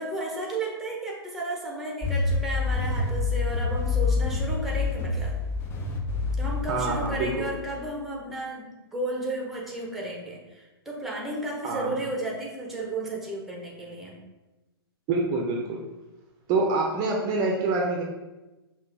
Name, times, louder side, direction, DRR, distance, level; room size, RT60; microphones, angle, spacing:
voice 1, 0.0-5.3 6.4-14.2, right 2 dB, ahead, -2 dB, 0.9 m, -33 dB
sound 1, 2.0-7.9, left 4 dB, 15° left, 0.5 m, -27 dB
voice 2, 6.7-7.5 11.6-11.9 15.1-15.8 16.5-18.0, right 3 dB, 30° right, 0 dB, 0.6 m, -26 dB
5.6 x 2.5 x 3.5 m, 1.1 s
hypercardioid pair, 120°, 13 cm